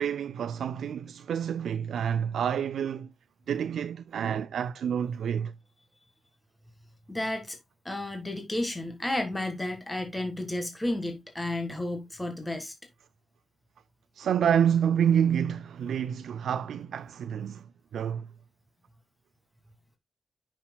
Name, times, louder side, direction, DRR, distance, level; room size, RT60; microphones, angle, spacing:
voice 1, 0.0-3.1 3.5-5.5 14.1-18.3, right 8 dB, 80° right, 0.3 m, -28 dB
voice 2, 7.1-7.6 7.8-12.7, left 1 dB, 10° left, 1.6 m, -32 dB
9.8 x 5.9 x 2.2 m
cardioid pair, 100°, 0 cm